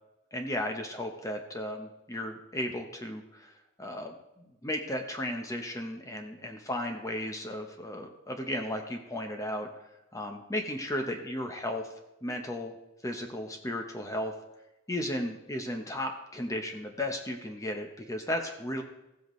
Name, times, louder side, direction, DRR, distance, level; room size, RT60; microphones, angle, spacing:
voice 1, 0.3-3.5 3.8-4.1 4.6-9.7 10.1-11.9 12.2-12.7 13.0-14.3 14.9-18.8, left 1 dB, 15° left, 3 dB, 0.8 m, -34 dB
15.5 x 7.8 x 3.1 m, 0.95 s
head